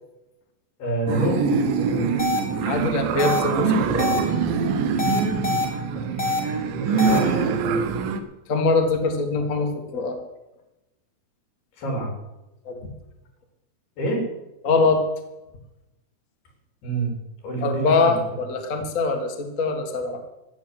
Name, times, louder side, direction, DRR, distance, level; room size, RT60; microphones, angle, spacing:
voice 1, 0.8-2.2 5.9-7.5 11.8-12.1 14.0-14.2 16.8-17.1 17.4-18.2, right 2 dB, 80° left, 0 dB, 5.8 m, -28 dB
sound 1, 1.1-8.2, right 5 dB, 70° right, 2.6 m, -24 dB
sound 2, 2.2-2.4 3.2-3.4 4.0-4.2 5.0-5.6 6.2-6.4 7.0-7.2, left 3 dB, 25° left, 1.7 m, -24 dB
voice 2, 2.7-4.2 8.5-10.2 12.6-12.8 14.6-15.0 17.6-20.2, left 3 dB, 45° left, 4 dB, 1.0 m, -23 dB
14.5 x 9.4 x 7.6 m, 0.95 s
omnidirectional pair, 4.5 m